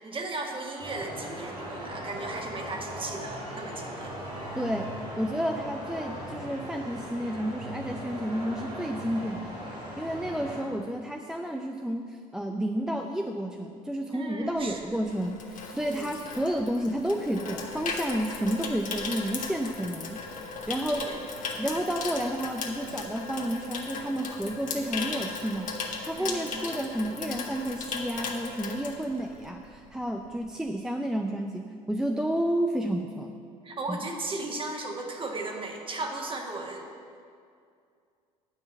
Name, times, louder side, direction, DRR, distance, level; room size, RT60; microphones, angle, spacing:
voice 1, 0.0-4.1 14.1-15.1 15.7-16.1 20.9-21.2 26.2-26.7 33.6-36.8, right 2 dB, 25° right, 1 dB, 1.7 m, -36 dB
sound 1, 0.8-10.6, equal, 85° right, 2.9 m, -39 dB
voice 2, 4.6-9.6 10.0-20.2 20.7-21.1 21.6-25.7 26.0-33.3 33.9-34.1, equal, 5° right, 3 dB, 0.5 m, -31 dB
Water tap faucet / Sink (filling or washing), 14.6-29.6 29.9-30.2, left 4 dB, 40° left, 1.5 m, -37 dB
9.8 x 5.7 x 7.8 m, 2.3 s
figure-of-eight pair, 60°, 19 cm